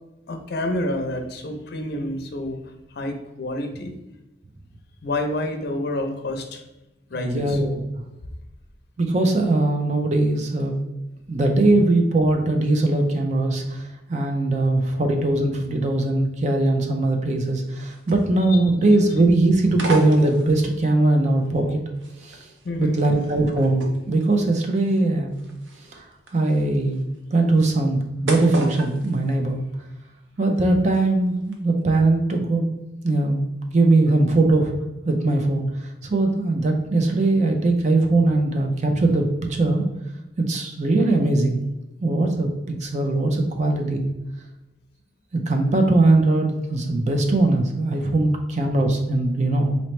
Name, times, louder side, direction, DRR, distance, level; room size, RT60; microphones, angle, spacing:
voice 1, 0.3-2.6 2.9-3.9 5.0-6.6 7.1-7.6 18.5-18.6 22.6-23.1 29.5-29.6, left 1 dB, 60° left, 5 dB, 0.6 m, -28 dB
voice 2, 7.2-7.8 9.0-10.7 11.3-21.8 22.2-22.5 22.8-25.3 25.9-26.1 26.3-27.0 27.3-29.6 30.4-32.7 33.0-34.7 35.0-39.8 40.4-41.7 42.0-44.1 45.3-49.8, right 2 dB, 40° right, 3 dB, 0.5 m, -20 dB
sound 1, 17.6-18.6 18.9-19.2 19.7-20.8 21.4-30.1 30.4-31.0 31.4-31.5, right 2 dB, 80° right, 0.7 m, -35 dB
4.0 x 2.9 x 3.1 m, 1.0 s
head